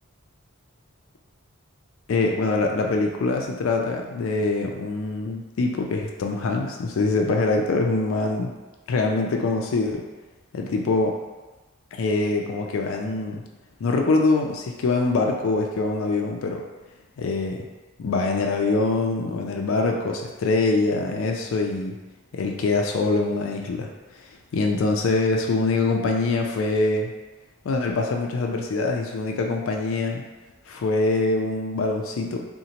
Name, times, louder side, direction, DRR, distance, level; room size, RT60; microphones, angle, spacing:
voice 1, 2.1-8.5 8.9-10.0 10.5-11.2 11.9-13.4 13.8-16.6 17.2-17.6 18.0-22.0 22.3-23.9 24.5-27.1 27.6-30.2 30.7-32.5, left 3 dB, 70° left, 2 dB, 0.3 m, -24 dB
3.9 x 2.1 x 2.8 m, 1.2 s
head